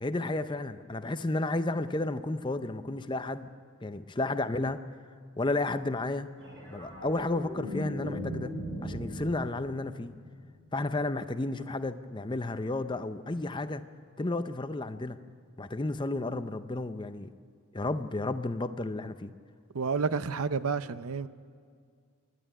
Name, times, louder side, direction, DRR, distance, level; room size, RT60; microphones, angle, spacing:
voice 1, 0.0-3.5 3.8-4.8 5.4-6.3 6.7-8.5 8.8-10.1 10.7-13.8 14.2-15.2 15.6-17.3 17.7-19.3, left 2 dB, 20° left, 0.5 m, -32 dB
sound 1, 6.4-10.9 13.3-13.5, equal, 55° right, 6.5 m, -39 dB
voice 2, 19.7-21.3, right 5 dB, 75° right, 0.6 m, -30 dB
26.0 x 11.0 x 9.7 m
head